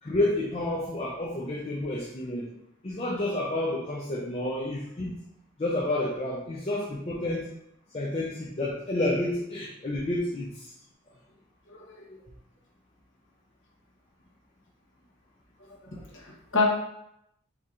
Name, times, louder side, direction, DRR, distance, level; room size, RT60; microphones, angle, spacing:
voice 1, 0.0-2.5 2.8-5.1 5.6-7.5 7.9-10.7, left 1 dB, 30° left, -4 dB, 0.5 m, -30 dB
voice 2, 11.7-12.2 15.9-16.6, left 3 dB, 65° left, -2 dB, 1.0 m, -29 dB
4.2 x 3.5 x 2.5 m, 0.81 s
head